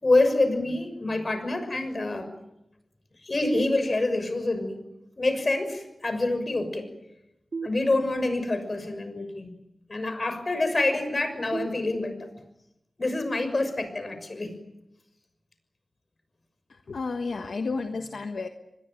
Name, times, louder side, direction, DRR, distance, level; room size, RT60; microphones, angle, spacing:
voice 1, 0.0-2.3 3.2-4.8 5.2-6.9 7.6-9.5 9.9-12.2 13.0-14.5, left 2 dB, 50° left, 9 dB, 6.4 m, -26 dB
sound 1, 3.5-4.5 7.5-8.5 11.5-12.5, right 4 dB, 80° right, 2.0 m, -38 dB
voice 2, 16.7-18.5, left 4 dB, 85° left, 5 dB, 1.4 m, -32 dB
25.5 x 21.5 x 9.2 m, 0.90 s
wide cardioid pair, 60°, 0 cm